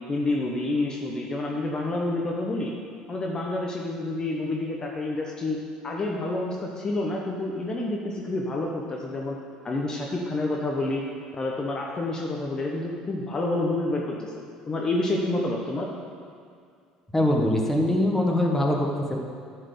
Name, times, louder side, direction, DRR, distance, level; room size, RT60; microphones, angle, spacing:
voice 1, 0.1-2.7 3.1-5.6 5.8-9.4 9.6-11.0 11.3-14.4 14.7-15.9, left 2 dB, 30° left, -1 dB, 1.1 m, -28 dB
voice 2, 17.1-19.2, left 1 dB, 10° left, 0 dB, 1.4 m, -23 dB
9.8 x 4.6 x 6.9 m, 2.3 s
supercardioid pair, 90°, 2 cm